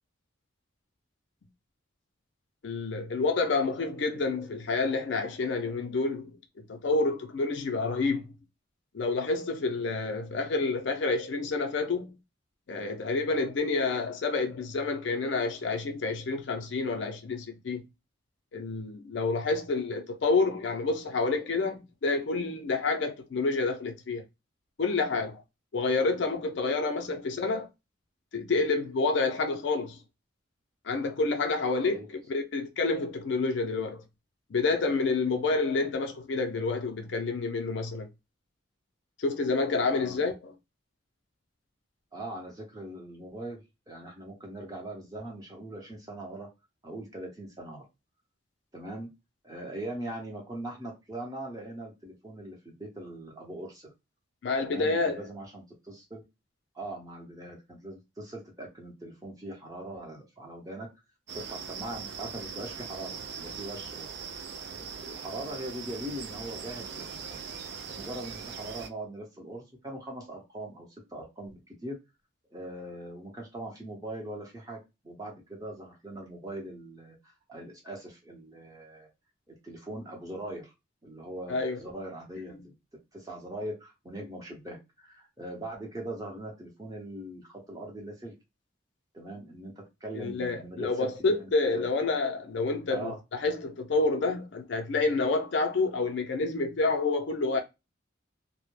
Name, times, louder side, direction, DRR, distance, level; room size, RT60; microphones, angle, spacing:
voice 1, 2.6-8.3 8.9-12.2 12.7-17.8 18.5-24.2 24.8-25.4 25.7-27.7 28.3-30.0 30.8-34.0 34.5-38.1 39.2-40.5 54.4-55.2 81.5-81.8 90.2-97.6, left 3 dB, 60° left, 0.4 m, -28 dB
voice 2, 39.9-40.2 42.1-43.6 43.9-46.5 46.8-47.8 48.7-49.1 49.4-53.9 54.6-56.2 56.7-60.9 61.3-64.1 65.0-67.4 67.9-72.0 72.5-79.1 79.6-80.7 81.0-82.7 83.1-88.3 89.1-91.8 92.9-93.2, right 1 dB, 20° right, 0.8 m, -41 dB
sound 1, 61.3-68.9, right 6 dB, 55° right, 0.3 m, -40 dB
2.1 x 2.0 x 3.0 m
head